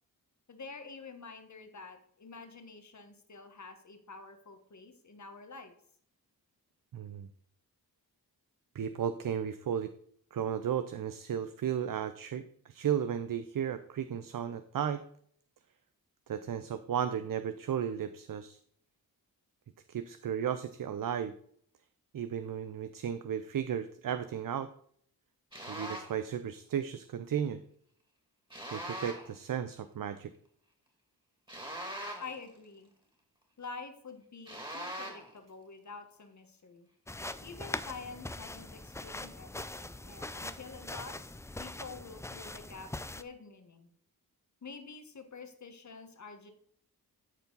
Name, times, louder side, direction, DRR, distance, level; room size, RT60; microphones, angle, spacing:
voice 1, 0.5-5.7 32.2-32.9 33.6-36.9 37.4-41.3 41.6-43.9 44.6-46.5, left 4 dB, 50° left, 7 dB, 1.5 m, -48 dB
voice 2, 6.9-7.3 8.7-9.9 10.3-15.0 16.3-18.6 19.9-21.3 22.1-24.7 25.7-27.6 28.7-30.3, right 8 dB, 60° right, 11 dB, 0.6 m, -34 dB
sound 1, 25.5-26.2 28.5-29.4 31.5-32.5 34.5-35.3, right 1 dB, 15° right, 2.6 m, -41 dB
sound 2, 37.1-43.2, left 2 dB, 10° left, 0.4 m, -42 dB
13.0 x 4.5 x 4.1 m, 0.63 s
cardioid pair, 70°, 38 cm